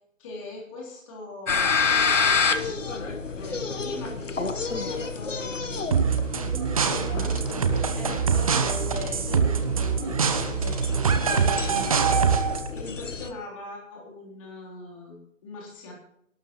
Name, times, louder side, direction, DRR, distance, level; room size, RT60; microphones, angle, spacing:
voice 1, 0.2-6.1 6.8-12.1 12.7-15.9, left 2 dB, 25° left, -2 dB, 3.5 m, -40 dB
sound 1, 1.5-13.3, left 5 dB, 70° left, 1.3 m, -29 dB
sound 2, 5.9-12.7, right 6 dB, 25° right, 0.8 m, -24 dB
24.0 x 12.0 x 3.1 m, 0.76 s
figure-of-eight pair, 140°, 39 cm